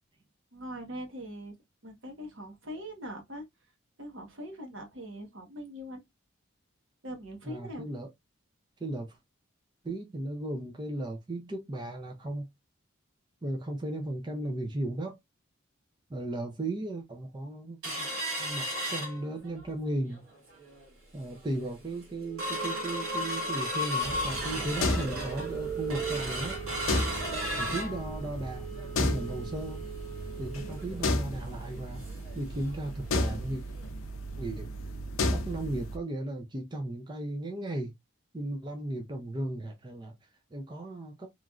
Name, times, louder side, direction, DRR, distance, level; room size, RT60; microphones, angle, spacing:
voice 1, 0.5-1.5 1.8-3.4 4.0-6.0 7.0-7.8, equal, 70° right, 1.1 m, -41 dB
voice 2, 7.5-8.1 8.8-9.2 9.8-12.5 13.4-15.2 16.1-18.1 18.4-20.2 21.1-26.6 27.6-28.7 29.0-29.8 30.4-32.0 32.3-33.6 34.4-34.7 35.3-37.9 38.3-41.3, right 1 dB, 20° right, 0.5 m, -36 dB
sound 1, 17.8-19.7 20.1-20.2 20.5-20.9 21.4-21.5 21.8-32.3 32.7-32.8 33.1-33.3 33.8-33.9, right 1 dB, 85° right, 1.4 m, -35 dB
sound 2, 24.0-36.0, left 1 dB, 85° left, 0.5 m, -34 dB
3.0 x 2.4 x 2.3 m
head